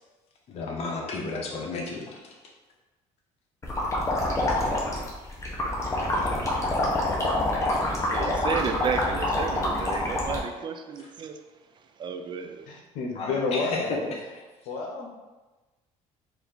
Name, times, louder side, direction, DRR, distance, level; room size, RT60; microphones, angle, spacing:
voice 1, 0.5-2.3 13.2-14.2, left 3 dB, 55° left, -1 dB, 1.0 m, -32 dB
sound 1, 3.6-10.4, left 1 dB, 20° left, 1.0 m, -26 dB
voice 2, 7.7-11.4 12.0-12.7, right 6 dB, 35° right, 6 dB, 0.4 m, -33 dB
voice 3, 12.7-14.1 14.7-15.1, left 4 dB, 85° left, 0 dB, 0.8 m, -30 dB
4.4 x 2.7 x 3.9 m, 1.2 s
cardioid pair, 120°, 13 cm